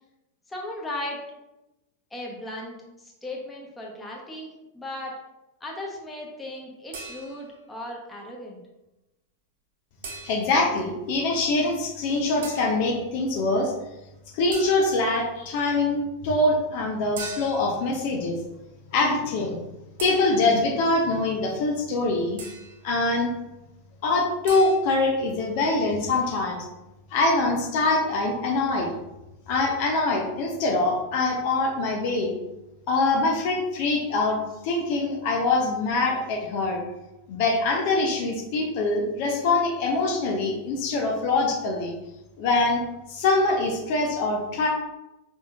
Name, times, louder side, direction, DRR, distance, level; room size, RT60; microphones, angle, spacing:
voice 1, 0.5-1.2 2.1-4.5 4.7-5.1 5.6-8.6, left 1 dB, 10° left, -2 dB, 1.1 m, -36 dB
sound 1, 6.9-7.6 10.0-10.7 12.4-12.8 14.5-15.1 17.2-17.8 20.0-20.7 22.4-22.9 24.5-24.8, right 4 dB, 60° right, 0.9 m, -39 dB
voice 2, 10.2-13.7 14.3-18.4 18.9-19.6 20.0-22.4 22.8-23.3 24.0-26.6 27.1-28.9 29.5-32.3 32.9-36.8 37.3-41.9 42.4-42.8 43.1-44.7, left 2 dB, 50° left, 1 dB, 0.7 m, -24 dB
5.1 x 3.8 x 2.5 m, 0.97 s
figure-of-eight pair, 90°, 0 cm